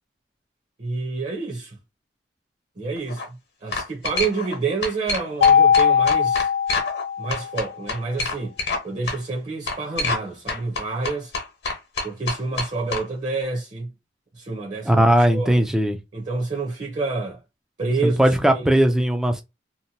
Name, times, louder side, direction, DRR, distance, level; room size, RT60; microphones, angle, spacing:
voice 1, 0.8-1.8 2.8-3.2 3.6-6.5 7.2-8.5 8.8-11.3 12.0-13.9 14.3-15.0 15.3-15.7 16.1-17.4 17.8-18.8, right 3 dB, 35° right, 0.6 m, -28 dB
sound 1, 3.0-3.3 3.7-4.6 4.8-7.0 7.3-8.8 9.1-9.2 9.7-10.2 10.5-13.0, left 3 dB, 55° left, 1.0 m, -27 dB
Mallet percussion, 5.4-7.7, left 7 dB, 90° left, 0.4 m, -19 dB
voice 2, 14.9-16.0 18.0-19.4, right 1 dB, 5° right, 0.3 m, -18 dB
2.8 x 2.1 x 2.7 m
head